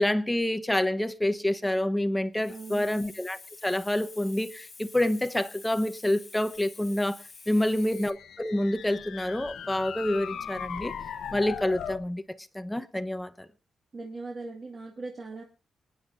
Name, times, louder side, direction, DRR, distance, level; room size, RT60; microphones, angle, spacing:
voice 1, 0.0-10.9 11.3-12.2 12.5-13.5, left 1 dB, 5° left, 0.9 m, -28 dB
Hiss, 2.3-8.1, left 4 dB, 30° left, 1.5 m, -48 dB
voice 2, 2.5-3.0 7.6-7.8 13.9-15.4, right 3 dB, 35° right, 2.0 m, -40 dB
sound 1, 7.7-12.1, left 8 dB, 80° left, 1.1 m, -39 dB
26.0 x 10.0 x 2.6 m
wide cardioid pair, 135°, 0 cm